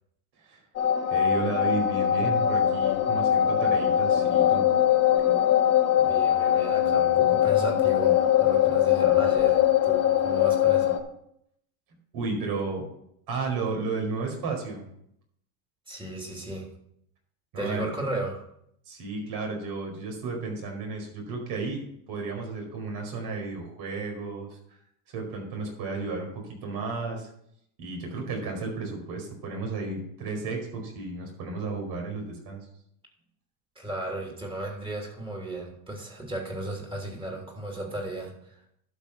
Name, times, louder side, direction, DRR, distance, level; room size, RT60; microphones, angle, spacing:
sound 1, 0.8-11.0, left 10 dB, 35° left, 1.1 m, -22 dB
voice 1, 1.1-4.6 12.1-12.8 13.3-14.9 17.5-17.9 18.9-21.8 22.1-24.6 25.1-27.3 27.8-32.6, right 3 dB, 55° right, 1 dB, 5.0 m, -33 dB
voice 2, 6.0-10.9 15.9-16.7 17.5-18.5 33.7-38.5, right 1 dB, 10° right, -1 dB, 3.1 m, -35 dB
12.0 x 5.8 x 5.9 m, 0.73 s
cardioid pair, 145°, 44 cm